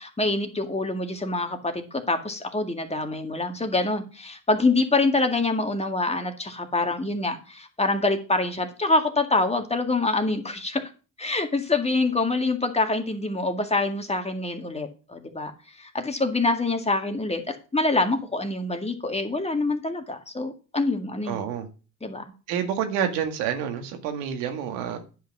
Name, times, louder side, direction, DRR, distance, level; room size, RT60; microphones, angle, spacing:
voice 1, 0.0-10.9 11.2-15.5 15.8-21.5 22.0-22.2, left 2 dB, 15° left, 2.0 m, -25 dB
voice 2, 21.3-21.7 22.5-25.0, right 8 dB, 80° right, 2.0 m, -28 dB
10.0 x 5.7 x 6.1 m
supercardioid pair, 80°, 42 cm